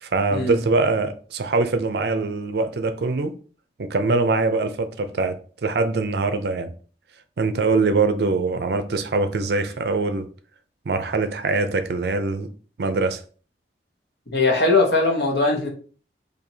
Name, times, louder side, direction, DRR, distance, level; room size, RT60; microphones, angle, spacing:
voice 1, 0.0-3.3 3.8-6.7 7.4-10.3 10.9-12.5 12.8-13.2, right 3 dB, 65° right, 0.5 m, -23 dB
voice 2, 14.3-15.7, left 3 dB, 70° left, 1.1 m, -20 dB
4.4 x 2.7 x 2.7 m
head